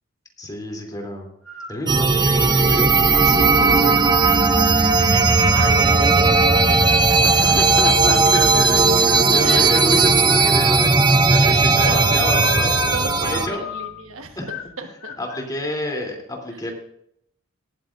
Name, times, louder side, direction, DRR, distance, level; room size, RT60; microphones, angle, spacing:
voice 1, 0.4-1.3 1.7-4.1 7.2-12.7 13.2-13.7 14.3-14.5 14.8-14.9 15.2-16.7, left 1 dB, 20° left, 1 dB, 3.1 m, -29 dB
sound 1, 1.4-1.9 2.4-3.0 3.6-4.6 5.2-7.1 7.7-10.5 11.0-11.6 12.0-14.0 14.5-14.8 15.0-15.5, left 7 dB, 75° left, 1.6 m, -35 dB
sound 2, 1.9-13.5, right 4 dB, 20° right, 0.7 m, -16 dB
sound 3, 3.2-14.7, left 2 dB, 45° right, 1.6 m, -39 dB
voice 2, 5.0-8.4 9.0-10.3 11.4-12.4 12.9-15.1, right 3 dB, 70° right, 6 dB, 1.3 m, -33 dB
18.5 x 13.5 x 2.6 m, 0.73 s
head